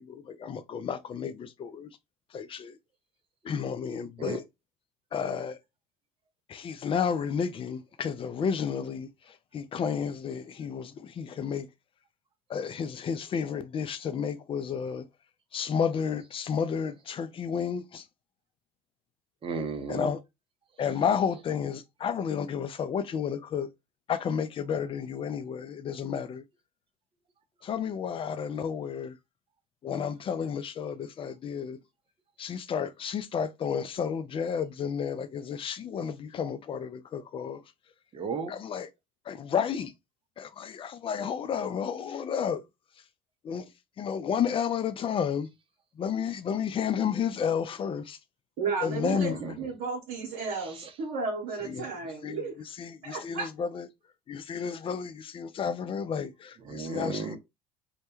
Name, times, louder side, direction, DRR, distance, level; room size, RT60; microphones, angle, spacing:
voice 1, 0.0-2.0 2.3-2.8 3.4-4.4 5.1-5.6 6.5-11.7 12.5-15.1 15.5-18.0 19.9-20.2 20.8-23.7 24.1-26.4 27.6-29.2 29.8-31.8 32.4-37.6 38.5-38.9 39.3-39.9 40.4-42.6 43.4-43.6 44.0-45.5 46.0-48.2 48.8-49.4 51.6-51.9 52.2-52.4 52.8-53.9 54.3-57.3, left 7 dB, 30° left, 0.4 m, -31 dB
voice 2, 19.4-20.1 38.1-38.5 49.1-49.5 50.8-50.9 56.7-57.4, right 4 dB, 30° right, 0.6 m, -34 dB
voice 3, 48.6-52.5 53.0-53.5, right 4 dB, 65° right, 0.9 m, -33 dB
2.2 x 2.2 x 2.9 m
hypercardioid pair, 70°, 18 cm